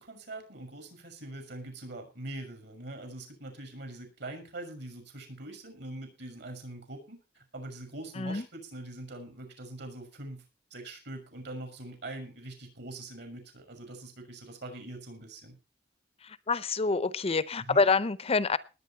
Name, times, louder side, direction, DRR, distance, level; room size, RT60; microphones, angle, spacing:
voice 1, 0.0-10.4 10.7-15.6 17.7-17.9, right 2 dB, 65° right, 6 dB, 6.6 m, -43 dB
voice 2, 16.5-18.6, left 4 dB, 35° left, 17 dB, 0.6 m, -26 dB
19.5 x 9.2 x 4.5 m, 0.32 s
head